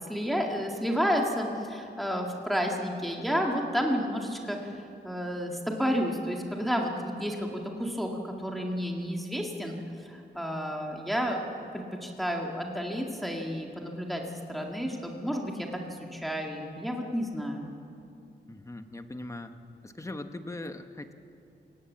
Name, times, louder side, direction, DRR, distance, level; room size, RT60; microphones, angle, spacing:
voice 1, 0.1-8.1 8.4-9.8 10.1-14.2 14.5-17.7, equal, ahead, 0 dB, 2.0 m, -31 dB
voice 2, 18.5-19.5 19.8-21.1, left 2 dB, 15° left, 8 dB, 1.1 m, -40 dB
27.5 x 18.0 x 7.4 m, 2.6 s
wide cardioid pair, 125°, 18 cm